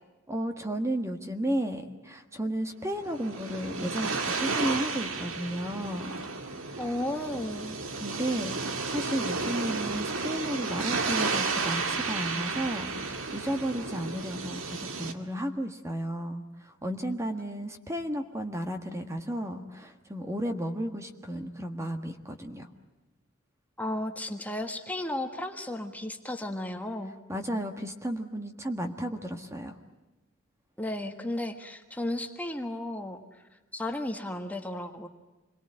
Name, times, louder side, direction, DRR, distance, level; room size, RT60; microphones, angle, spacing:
voice 1, 0.3-6.2 6.7-6.8 7.3-7.4 8.0-22.7 27.3-29.8, right 1 dB, 15° right, 6 dB, 1.5 m, -33 dB
sound 1, 2.9-15.1, right 4 dB, 70° right, 2.1 m, -32 dB
voice 2, 6.8-7.8 23.8-27.1 30.8-33.2 33.7-35.1, left 1 dB, 10° left, 5 dB, 1.5 m, -34 dB
28.0 x 22.0 x 8.8 m, 1.1 s
head